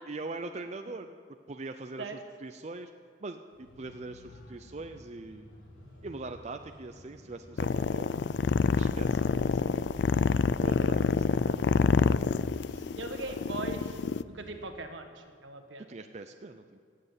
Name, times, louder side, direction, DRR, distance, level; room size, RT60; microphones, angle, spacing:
voice 1, 0.1-1.1 1.5-2.9 3.2-5.5 6.0-8.1 8.7-10.0 10.6-12.9 15.8-16.8, right 3 dB, 35° right, 6 dB, 0.5 m, -42 dB
sound 1, 3.5-14.7, left 1 dB, 85° left, 3.1 m, -53 dB
sound 2, 7.6-14.2, left 5 dB, 60° left, 0.3 m, -27 dB
voice 2, 13.0-14.0 14.2-15.8, right 3 dB, 75° right, 6 dB, 1.4 m, -40 dB
17.0 x 7.7 x 8.2 m, 2.2 s
head